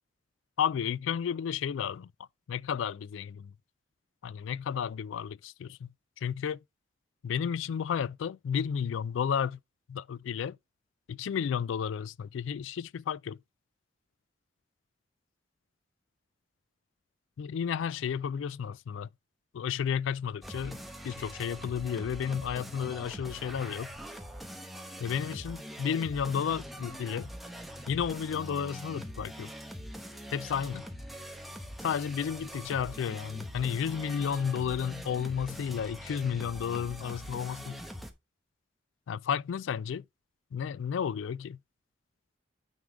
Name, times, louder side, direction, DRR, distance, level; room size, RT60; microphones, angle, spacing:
voice 1, 0.6-2.1 2.5-3.5 4.2-6.6 7.2-9.6 9.9-10.6 11.1-13.4 17.4-19.1 19.5-20.8 21.0-23.9 25.0-27.3 27.9-29.5 30.3-30.9 31.8-37.8 39.1-40.0 40.5-41.6, left 7 dB, 80° left, 0.3 m, -32 dB
sound 1, 20.4-38.1, equal, ahead, 0.9 m, -43 dB
9.2 x 3.7 x 4.8 m
head